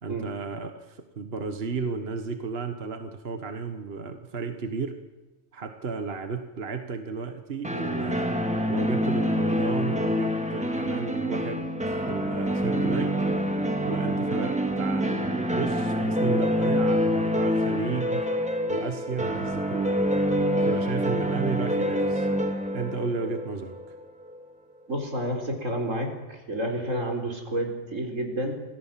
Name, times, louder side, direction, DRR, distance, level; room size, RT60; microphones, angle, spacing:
voice 1, 0.0-5.0 5.5-8.4 8.7-13.2 13.8-18.3 18.7-20.0 20.6-22.3 22.7-23.9, right 5 dB, 50° right, 7 dB, 1.6 m, -33 dB
sound 1, 7.6-24.4, equal, 5° right, 1.9 m, -26 dB
voice 2, 24.9-28.5, right 1 dB, 85° right, 3 dB, 4.7 m, -30 dB
26.5 x 18.5 x 7.5 m, 1.2 s
omnidirectional pair, 1.3 m